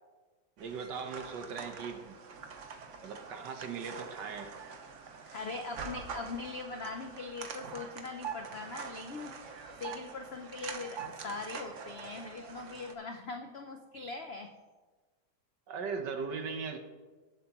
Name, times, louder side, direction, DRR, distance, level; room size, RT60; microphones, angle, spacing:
sound 1, 0.6-12.9, right 5 dB, 50° right, 1.1 m, -45 dB
voice 1, 0.6-2.1 3.0-4.5 15.7-16.8, right 5 dB, 75° right, 5 dB, 1.7 m, -39 dB
voice 2, 5.3-14.5, left 3 dB, 70° left, 5 dB, 0.6 m, -41 dB
18.5 x 7.7 x 3.0 m, 1.3 s
omnidirectional pair, 1.9 m